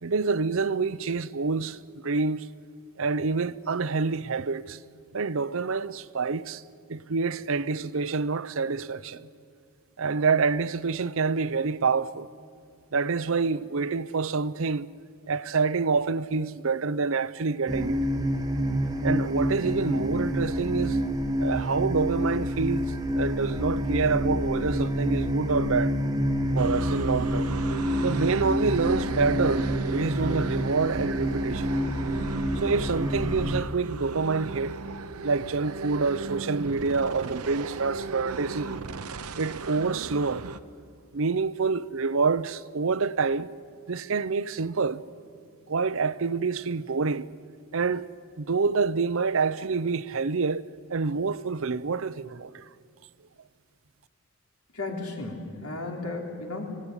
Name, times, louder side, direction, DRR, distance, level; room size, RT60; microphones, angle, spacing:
voice 1, 0.0-1.8 2.0-2.5 3.0-4.8 5.1-6.6 6.9-9.3 10.0-12.3 12.9-14.9 15.3-18.0 19.0-21.0 21.4-22.9 23.1-25.9 26.5-27.5 28.0-31.7 32.6-34.8 35.2-38.8 39.4-40.4 41.1-43.5 43.9-45.0 45.7-47.3 47.7-48.1 48.4-52.6, right 4 dB, 65° right, 0.6 m, -27 dB
sound 1, 17.7-33.6, equal, 15° right, 1.3 m, -28 dB
sound 2, 26.6-40.6, right 4 dB, 90° right, 0.9 m, -36 dB
voice 2, 54.7-56.8, left 2 dB, 85° left, 3.7 m, -34 dB
25.5 x 17.5 x 9.8 m
head